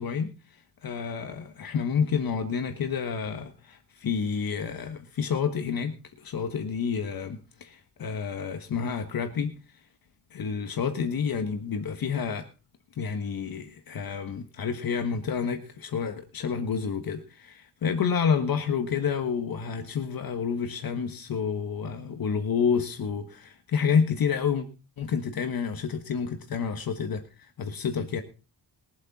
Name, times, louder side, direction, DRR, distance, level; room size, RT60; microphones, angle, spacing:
voice 1, 0.0-9.8 10.3-12.5 13.0-24.7 25.0-28.2, left 6 dB, 55° left, 1.4 m, -29 dB
21.5 x 8.0 x 4.2 m
wide cardioid pair, 135°, 41 cm